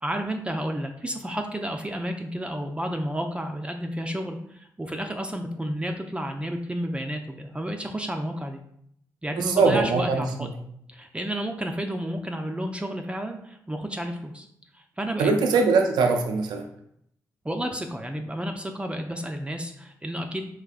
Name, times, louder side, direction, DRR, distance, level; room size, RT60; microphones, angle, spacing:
voice 1, 0.0-8.6 9.2-10.5 10.9-14.5 15.0-15.6 17.4-20.5, equal, 15° right, 4 dB, 0.4 m, -31 dB
voice 2, 9.4-10.5 15.2-16.7, right 4 dB, 80° right, 4 dB, 0.3 m, -22 dB
3.5 x 3.0 x 2.4 m, 0.69 s
supercardioid pair, 45°, 7 cm